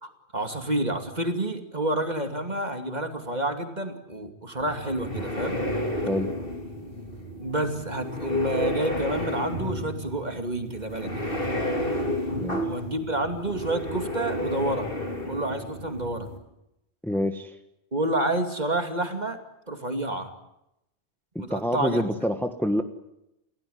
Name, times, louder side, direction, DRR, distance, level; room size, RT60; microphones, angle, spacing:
voice 1, 0.0-5.6 7.4-11.2 12.7-14.9 15.3-16.3 17.9-19.4 19.7-20.3 21.4-22.0, right 1 dB, 40° right, 6 dB, 2.7 m, -29 dB
sound 1, 4.6-16.4, left 1 dB, 55° left, 4.0 m, -31 dB
voice 2, 17.0-17.6 21.3-22.8, equal, ahead, 7 dB, 1.4 m, -27 dB
29.5 x 17.0 x 9.6 m, 0.87 s
omnidirectional pair, 1.2 m